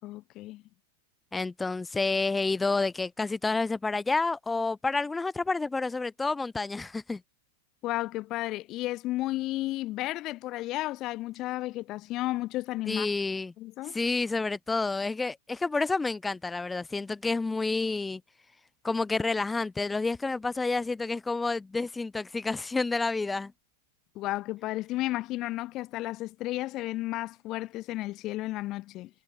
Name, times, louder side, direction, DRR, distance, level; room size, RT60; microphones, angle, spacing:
voice 1, 0.0-0.6 7.8-13.1 13.6-14.0 24.2-29.1, left 17 dB, 25° left, 7.3 m, -33 dB
voice 2, 1.3-7.2 12.9-13.5 13.9-18.2 18.8-23.5, left 3 dB, 5° left, 2.7 m, -29 dB
supercardioid pair, 175°, 0 cm